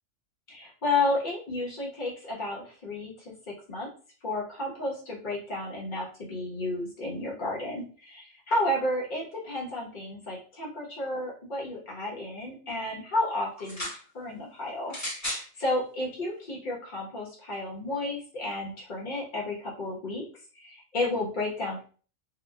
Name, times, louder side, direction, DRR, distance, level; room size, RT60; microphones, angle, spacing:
voice 1, 0.5-3.1 3.7-3.9 4.2-13.9 14.1-14.9 15.2-20.2 20.5-21.9, left 2 dB, 40° left, -4 dB, 1.1 m, -32 dB
sound 1, 13.6-14.0 14.9-15.5 16.4-16.5, left 1 dB, 15° left, 0.9 m, -34 dB
2.9 x 2.2 x 2.2 m, 0.40 s
omnidirectional pair, 1.4 m